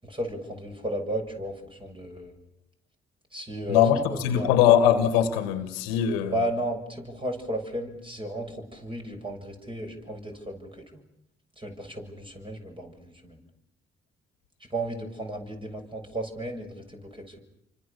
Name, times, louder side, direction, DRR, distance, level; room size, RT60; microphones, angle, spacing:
voice 1, 0.0-2.3 3.3-4.6 6.3-10.8 11.6-13.4 14.7-17.4, right 1 dB, 15° right, 7.0 m, -34 dB
voice 2, 3.7-6.3, left 9 dB, 85° left, 1.8 m, -21 dB
29.0 x 25.0 x 7.0 m
hypercardioid pair, 45°, 29 cm